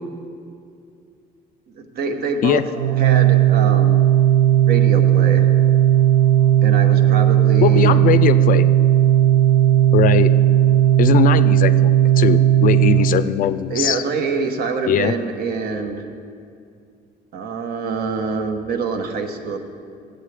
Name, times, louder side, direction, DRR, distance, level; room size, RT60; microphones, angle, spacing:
voice 1, 1.7-2.6 2.9-4.0 4.6-5.5 6.6-8.0 13.7-16.1 17.3-19.6, right 4 dB, 65° right, 5 dB, 1.0 m, -25 dB
Organ, 2.7-13.6, right 11 dB, 85° right, 0.6 m, -15 dB
voice 2, 7.6-8.7 9.9-10.3 11.0-14.0 14.9-15.2, left 10 dB, 55° left, 12 dB, 0.4 m, -19 dB
14.5 x 8.0 x 3.3 m, 2.4 s
cardioid pair, 110°, 17 cm